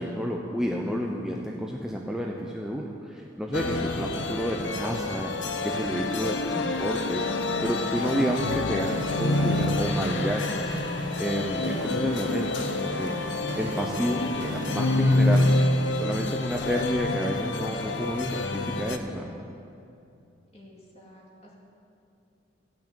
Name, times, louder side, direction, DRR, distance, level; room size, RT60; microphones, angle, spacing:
voice 1, 0.0-5.3 5.6-7.3 7.6-10.7 11.2-13.1 13.5-15.6 15.9-19.3, equal, 5° right, -1 dB, 0.7 m, -30 dB
sound 1, 3.5-19.0, left 2 dB, 75° left, 0.7 m, -27 dB
sound 2, 7.9-15.7, right 2 dB, 65° right, 0.9 m, -38 dB
voice 2, 20.5-21.5, equal, 35° left, -3 dB, 2.4 m, -51 dB
14.5 x 6.2 x 8.7 m, 2.6 s
head